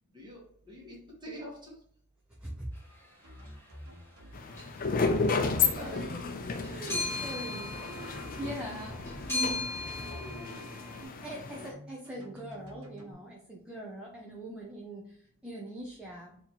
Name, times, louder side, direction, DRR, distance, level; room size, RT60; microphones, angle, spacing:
voice 1, 0.1-1.8 5.5-6.0 9.8-10.8 11.5-11.7, equal, 20° right, -3 dB, 1.3 m, -46 dB
sound 1, 3.2-4.4 4.8-5.4 6.3-9.3 9.7-10.4 11.3-13.1, equal, 75° right, 1.0 m, -49 dB
sound 2, 3.3-3.5 4.5-5.0 5.2-11.0, left 3 dB, 10° left, 1.4 m, -39 dB
sound 3, 4.3-11.7, left 4 dB, 40° left, 0.5 m, -33 dB
voice 2, 5.4-9.7 11.0-16.4, right 1 dB, 5° right, -4 dB, 0.6 m, -42 dB
4.1 x 2.8 x 2.9 m, 0.62 s
head